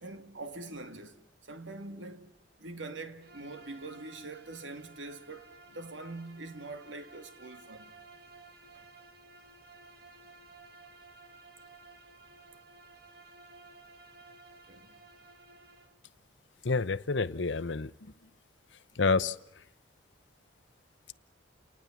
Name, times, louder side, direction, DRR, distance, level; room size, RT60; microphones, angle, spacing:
voice 1, 0.0-7.9 8.7-8.8 14.7-14.9, right 2 dB, 80° right, 2.2 m, -44 dB
Bowed string instrument, 3.2-16.0, right 3 dB, 55° right, 2.3 m, -55 dB
voice 2, 16.6-18.1 19.0-19.4, left 4 dB, 75° left, 0.8 m, -28 dB
29.5 x 19.5 x 7.3 m
head